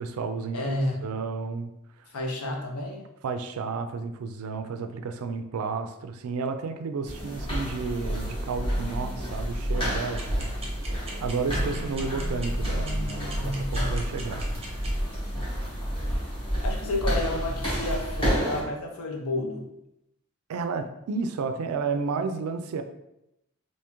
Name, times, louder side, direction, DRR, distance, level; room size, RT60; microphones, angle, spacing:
voice 1, 0.0-1.7 2.0-2.1 3.2-10.5 11.2-14.9 20.5-22.8, right 4 dB, 75° right, 8 dB, 0.4 m, -32 dB
voice 2, 0.5-1.0 2.1-3.0 11.5-13.9 16.6-19.7, left 1 dB, 80° left, 1 dB, 0.7 m, -32 dB
sound 1, 7.1-18.6, equal, 25° left, 1.3 m, -29 dB
sound 2, 10.2-14.9, right 4 dB, 25° right, 0.7 m, -40 dB
3.4 x 2.7 x 2.9 m, 0.86 s
head